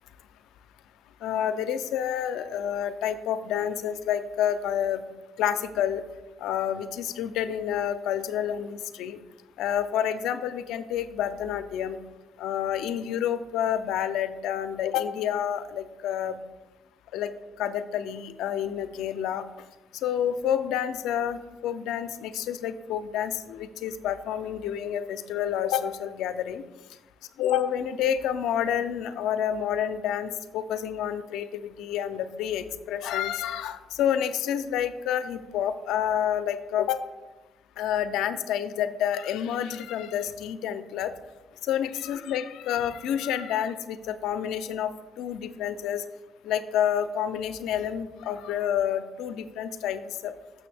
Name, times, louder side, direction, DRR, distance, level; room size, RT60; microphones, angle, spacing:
voice 1, 1.2-5.0 5.4-6.0 6.4-9.2 9.6-12.0 12.4-16.4 17.1-17.3 17.6-19.5 20.0-21.4 21.6-26.6 27.4-37.1 37.8-41.1 41.6-46.0 46.4-50.3, left 9 dB, 90° left, 11 dB, 0.4 m, -29 dB
7.0 x 6.0 x 3.3 m, 1.1 s
cardioid pair, 90°, 0 cm